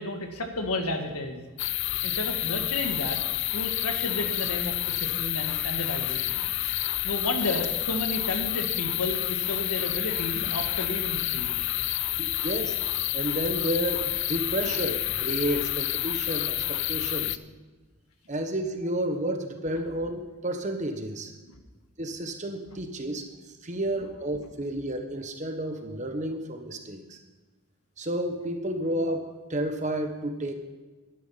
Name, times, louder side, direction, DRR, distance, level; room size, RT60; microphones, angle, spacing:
voice 1, 0.0-1.4 2.0-3.2 3.5-6.4 7.0-11.6 21.5-21.6, left 2 dB, 85° left, 5 dB, 1.7 m, -32 dB
sound 1, 1.6-17.4, left 15 dB, 55° left, 0.4 m, -29 dB
voice 2, 12.2-12.8 13.1-17.4 18.3-21.3 22.0-23.3 23.6-27.2 28.0-30.5, right 1 dB, 30° right, 5 dB, 1.2 m, -31 dB
12.5 x 10.5 x 5.8 m, 1.2 s
head